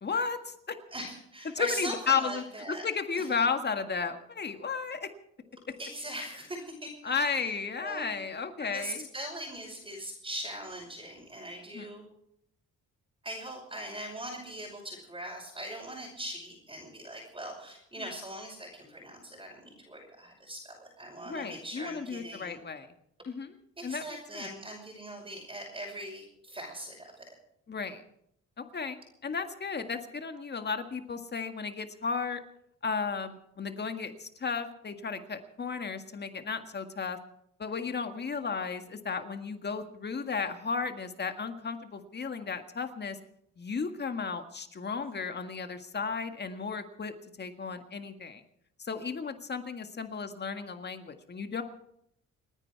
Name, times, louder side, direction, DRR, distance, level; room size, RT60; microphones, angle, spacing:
voice 1, 0.0-0.8 1.5-5.1 7.0-9.1 11.7-11.9 21.3-22.9 23.3-23.5 23.8-24.5 27.7-28.0 28.6-32.4 32.8-37.2 37.6-43.2 43.6-47.1 47.4-48.4 48.8-51.6, left 5 dB, 35° left, 7 dB, 1.8 m, -34 dB
voice 2, 0.9-2.9 3.2-3.3 5.8-7.5 7.8-8.1 8.6-12.0 13.2-22.6 23.8-27.3, right 1 dB, 15° right, -2 dB, 5.8 m, -41 dB
29.5 x 9.9 x 4.7 m, 0.75 s
cardioid pair, 90°, 30 cm